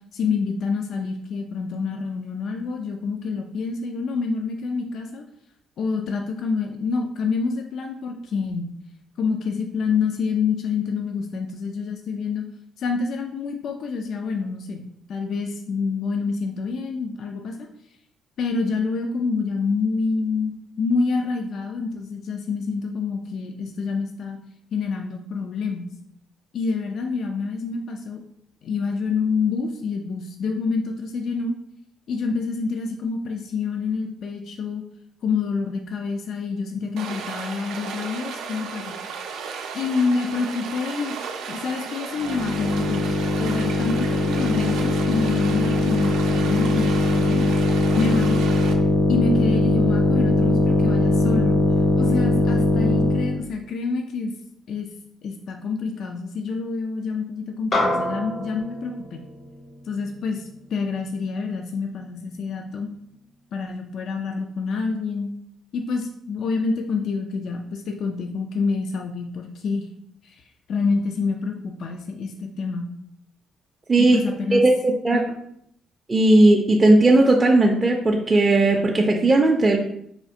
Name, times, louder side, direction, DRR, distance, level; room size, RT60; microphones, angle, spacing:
voice 1, 0.1-5.2 5.8-8.7 9.2-12.5 12.8-17.7 18.4-24.4 24.7-25.9 26.5-28.2 28.6-31.5 32.1-34.8 35.2-38.9 39.7-41.2 41.5-47.5 48.0-48.5 49.1-51.6 52.0-54.3 54.7-54.9 55.2-59.2 59.9-60.4 60.7-62.9 63.5-65.3 65.7-69.9 70.2-70.4 70.7-72.9 74.0-74.7 75.1-75.2, left 4 dB, 70° left, 4 dB, 0.4 m, -27 dB
Stream, 37.0-48.7, right 6 dB, 90° right, 0.4 m, -34 dB
sound 1, 42.2-53.4, left 2 dB, 85° left, 0.8 m, -20 dB
sound 2, 57.7-62.3, left 1 dB, 50° left, 0.8 m, -30 dB
voice 2, 76.1-79.8, right 2 dB, 25° right, 0 dB, 0.4 m, -16 dB
4.2 x 2.4 x 2.7 m, 0.72 s
cardioid pair, 90°, 0 cm